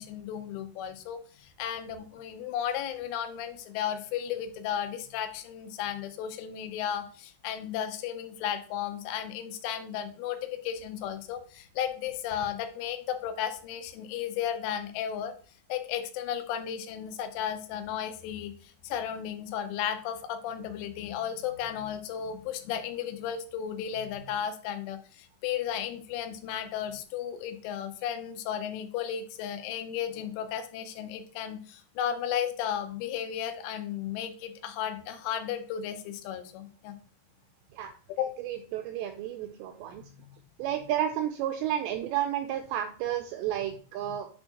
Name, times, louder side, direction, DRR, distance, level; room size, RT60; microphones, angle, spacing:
voice 1, 0.0-15.3 15.7-36.9 38.2-38.3, left 9 dB, 85° left, 9 dB, 3.2 m, -34 dB
voice 2, 38.4-40.0 40.6-44.3, right 11 dB, 85° right, 6 dB, 2.5 m, -31 dB
9.6 x 4.4 x 2.9 m, 0.40 s
omnidirectional pair, 5.6 m